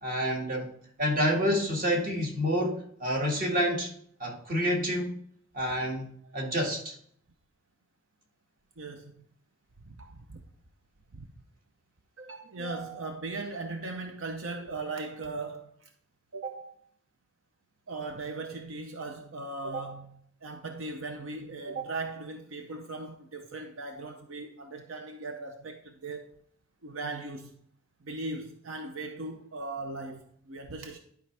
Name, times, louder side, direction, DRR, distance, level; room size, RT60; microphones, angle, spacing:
voice 1, 0.0-0.7 1.0-3.9 4.2-5.1 5.5-7.0, equal, 45° right, 2.0 m, -28 dB
voice 2, 8.8-9.1 9.8-10.4 11.1-11.3 12.2-15.9 16.3-16.8 17.9-26.4 26.8-27.6 28.0-31.0, right 3 dB, 85° right, 0.7 m, -38 dB
11.5 x 5.2 x 3.4 m
head